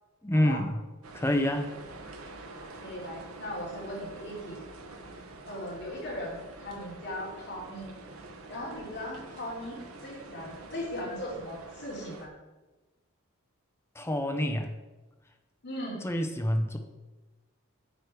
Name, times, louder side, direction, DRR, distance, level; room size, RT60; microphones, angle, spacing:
voice 1, 0.2-0.8 1.1-1.7 14.0-14.7 16.0-16.8, left 1 dB, 10° left, 5 dB, 0.7 m, -27 dB
sound 1, 1.0-12.3, right 2 dB, 85° right, 1.0 m, -47 dB
voice 2, 2.8-4.6 5.5-7.9 8.5-12.3 15.6-16.0, left 1 dB, 50° left, -5 dB, 3.1 m, -38 dB
9.1 x 4.8 x 4.9 m, 1.2 s
head